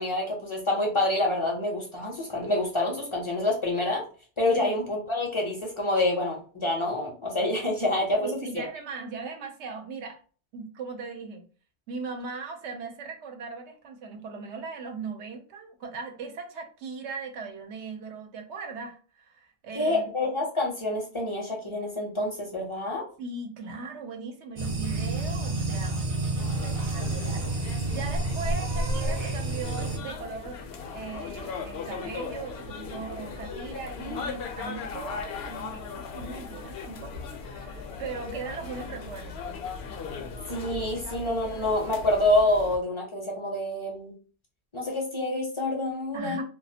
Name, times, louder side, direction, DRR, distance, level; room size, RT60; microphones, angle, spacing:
voice 1, 0.0-4.0 4.4-8.3 8.5-8.6 19.7-23.0 33.5-33.7 40.5-44.1 44.7-46.4, left 1 dB, 35° left, -1 dB, 0.5 m, -27 dB
voice 2, 8.2-10.2 10.5-11.5 11.9-20.1 23.2-30.7 30.9-39.6 46.1-46.4, right 4 dB, 80° right, 4 dB, 0.9 m, -39 dB
sound 1, 24.6-30.0, right 2 dB, 45° right, 0.5 m, -29 dB
sound 2, 26.4-42.8, left 5 dB, 70° left, 0.8 m, -38 dB
2.4 x 2.3 x 2.7 m, 0.40 s
omnidirectional pair, 1.2 m